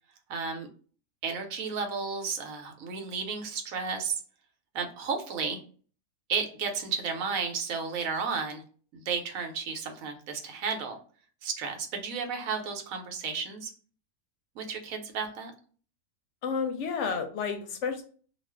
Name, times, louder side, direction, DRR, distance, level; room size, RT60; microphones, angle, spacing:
voice 1, 0.3-0.7 1.2-4.2 4.7-5.6 6.3-8.6 8.9-11.0 11.4-13.7 14.6-15.5, right 5 dB, 85° right, 4 dB, 1.1 m, -33 dB
voice 2, 16.4-18.0, left 5 dB, 70° left, 5 dB, 0.8 m, -31 dB
2.4 x 2.4 x 3.3 m, 0.42 s
omnidirectional pair, 1.4 m